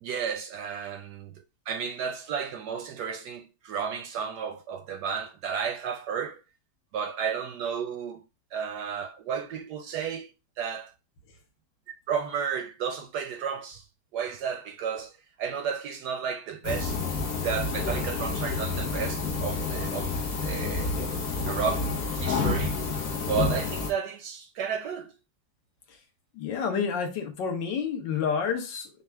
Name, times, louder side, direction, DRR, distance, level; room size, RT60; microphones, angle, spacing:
voice 1, 0.0-6.4 6.9-8.2 8.5-10.3 10.6-10.9 12.1-13.8 14.1-15.1 15.4-17.0 17.4-20.1 20.4-20.9 21.5-22.8 23.2-25.1, right 7 dB, 75° right, 1.0 m, -32 dB
sound 1, 16.6-23.9, left 4 dB, 55° left, 1.3 m, -29 dB
voice 2, 26.3-28.9, left 6 dB, 70° left, 1.5 m, -29 dB
5.4 x 2.4 x 3.3 m
omnidirectional pair, 2.1 m